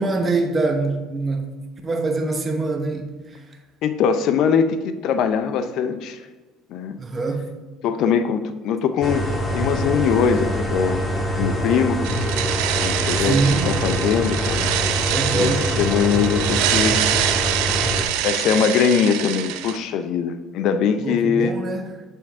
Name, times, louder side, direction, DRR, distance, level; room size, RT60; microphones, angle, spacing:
voice 1, 0.0-3.1 7.0-7.5 13.2-13.8 15.1-15.7 21.0-21.9, right 3 dB, 30° right, 3 dB, 0.9 m, -24 dB
voice 2, 3.8-6.2 6.7-6.9 7.8-9.3 9.5-11.0 11.4-12.0 12.8-13.4 13.6-14.7 15.0-17.0 18.2-21.6, left 7 dB, 65° left, 10 dB, 0.5 m, -21 dB
sound 1, 9.0-18.0, equal, 25° left, 1.4 m, -24 dB
sound 2, 12.0-19.8, right 12 dB, 85° right, 0.4 m, -25 dB
6.9 x 3.6 x 4.5 m, 1.2 s
supercardioid pair, 95°, 0 cm